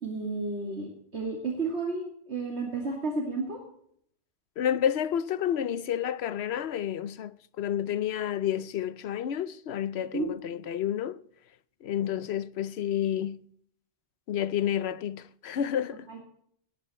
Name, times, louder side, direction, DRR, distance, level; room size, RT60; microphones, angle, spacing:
voice 1, 0.0-3.6 10.1-10.3 16.1-16.2, right 3 dB, 85° right, 2.8 m, -32 dB
voice 2, 4.6-11.2 11.8-13.4 14.3-16.1, left 10 dB, 80° left, 1.0 m, -30 dB
18.0 x 10.5 x 4.3 m
omnidirectional pair, 1.1 m